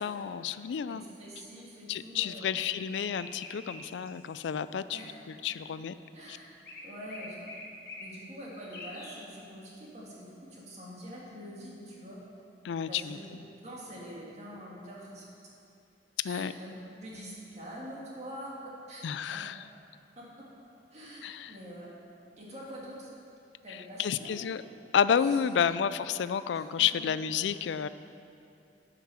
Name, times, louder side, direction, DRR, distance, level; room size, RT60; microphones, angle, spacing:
voice 1, 0.0-1.0 1.9-5.0 5.4-5.9 12.6-13.2 16.2-16.5 19.0-19.6 21.2-21.5 23.7-24.6 24.9-27.9, left 8 dB, 80° left, 14 dB, 0.3 m, -30 dB
voice 2, 0.9-3.0 4.9-5.1 6.1-6.5 6.8-7.4 8.0-12.2 12.9-13.2 13.6-15.3 16.2-16.7 17.0-19.5 20.2-20.5 20.9-21.9 22.4-23.1 23.6-24.5 25.2-25.9 26.5-27.1, equal, 40° right, -5 dB, 1.8 m, -45 dB
sound 1, 2.7-4.5 6.6-8.1 8.7-9.2, left 2 dB, 55° left, 1.6 m, -45 dB
12.0 x 5.9 x 5.7 m, 2.6 s
head